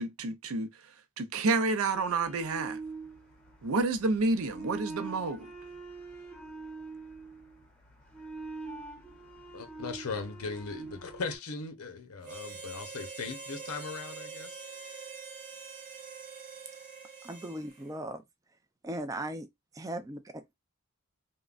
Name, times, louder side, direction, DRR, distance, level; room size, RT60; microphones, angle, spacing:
voice 1, 0.0-2.8 3.6-5.5, right 3 dB, 70° right, 0.5 m, -30 dB
sound 1, 1.9-11.4, right 3 dB, 5° left, 0.8 m, -44 dB
voice 2, 9.5-14.6, left 4 dB, 80° left, 0.7 m, -38 dB
Harmonica, 12.2-17.9, right 4 dB, 40° right, 0.9 m, -45 dB
voice 3, 17.2-18.2 18.8-19.5 19.7-20.4, right 1 dB, 15° right, 0.4 m, -38 dB
3.6 x 2.1 x 2.4 m
head